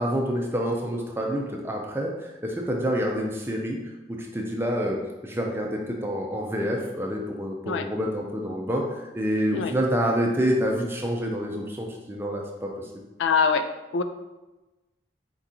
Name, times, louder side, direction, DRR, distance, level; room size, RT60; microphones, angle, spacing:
voice 1, 0.0-3.8 4.2-5.0 5.2-12.7, equal, 15° right, 0 dB, 0.5 m, -27 dB
voice 2, 13.2-13.6 13.9-14.0, left 5 dB, 90° left, 9 dB, 0.4 m, -23 dB
4.5 x 2.9 x 3.7 m, 1.1 s
head